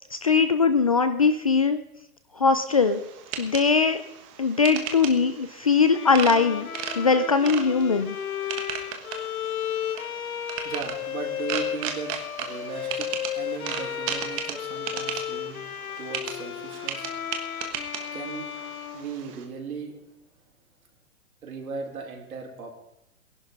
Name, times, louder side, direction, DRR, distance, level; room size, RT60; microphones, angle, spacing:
voice 1, 0.1-1.8 2.4-3.0 3.4-4.0 4.4-6.7 7.0-8.2, left 5 dB, 25° left, 10 dB, 0.4 m, -21 dB
sound 1, 2.7-19.4, right 8 dB, 25° right, 1.5 m, -37 dB
Bowed string instrument, 5.9-19.8, left 10 dB, 80° left, 1.3 m, -34 dB
voice 2, 10.6-12.1 12.4-15.6 16.0-17.5 18.1-18.5 18.9-20.0 21.4-22.7, right 5 dB, 75° right, 1 dB, 4.6 m, -37 dB
19.0 x 11.5 x 5.3 m, 0.86 s
hypercardioid pair, 165°, 43 cm